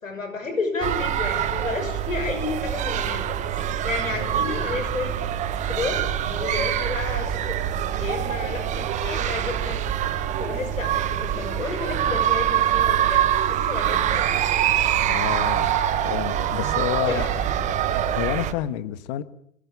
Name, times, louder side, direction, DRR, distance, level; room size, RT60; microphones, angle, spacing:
voice 1, 0.0-5.1 5.6-7.6 8.0-9.8 10.4-14.3 16.8-17.3, left 3 dB, 75° left, 7 dB, 6.5 m, -31 dB
sound 1, 0.8-18.5, right 10 dB, 20° right, 1.5 m, -24 dB
voice 2, 15.0-15.7 16.0-17.2 18.2-19.2, left 13 dB, 30° left, 12 dB, 1.8 m, -29 dB
25.0 x 22.5 x 7.1 m, 0.73 s
figure-of-eight pair, 120°, 40 cm